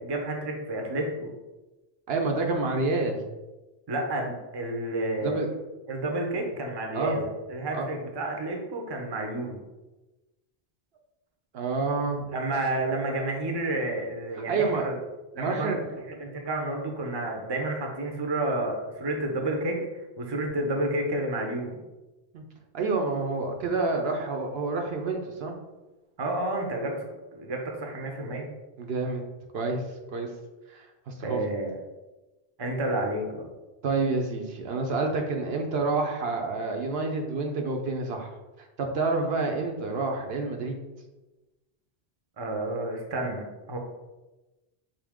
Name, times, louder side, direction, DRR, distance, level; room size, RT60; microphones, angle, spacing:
voice 1, 0.0-1.3 3.9-5.4 5.9-9.6 12.3-15.0 15.3-15.8 16.1-19.9 20.2-21.8 26.2-28.5 31.2-31.8 32.6-33.5 42.4-43.8, right 1 dB, 30° right, 2 dB, 0.6 m, -30 dB
voice 2, 2.1-3.2 5.2-5.5 6.9-7.2 7.7-7.9 11.5-12.3 14.5-14.9 15.4-15.9 22.3-22.4 22.7-25.5 28.8-29.2 29.5-29.9 30.1-30.3 30.7-31.4 33.8-38.3 38.8-40.8, right 3 dB, 70° right, 3 dB, 0.9 m, -28 dB
5.2 x 2.8 x 3.5 m, 1.1 s
omnidirectional pair, 1.1 m